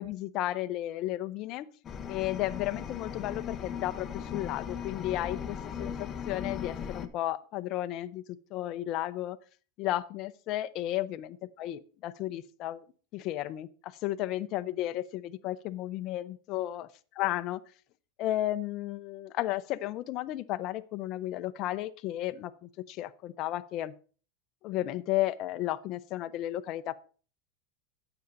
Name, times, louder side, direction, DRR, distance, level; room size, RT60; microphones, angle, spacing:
voice 1, 0.0-1.7 2.1-9.4 9.8-12.8 13.1-16.9 17.2-17.6 18.2-23.9 24.6-27.0, left 14 dB, 45° left, 11 dB, 0.6 m, -33 dB
sound 1, 1.8-7.1, left 7 dB, 25° left, 0.9 m, -38 dB
9.4 x 7.0 x 5.2 m, 0.39 s
supercardioid pair, 140°, 0 cm